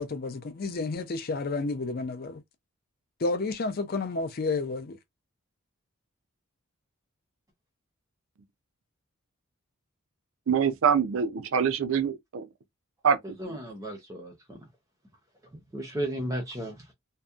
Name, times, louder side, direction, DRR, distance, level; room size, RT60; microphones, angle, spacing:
voice 1, 0.0-2.4 3.2-5.0, left 3 dB, 45° left, 0.4 m, -31 dB
voice 2, 10.5-12.5 13.0-13.6, right 7 dB, 60° right, 0.4 m, -25 dB
voice 3, 13.4-14.6 15.5-16.9, right 1 dB, 15° right, 0.6 m, -35 dB
2.6 x 2.1 x 2.3 m
head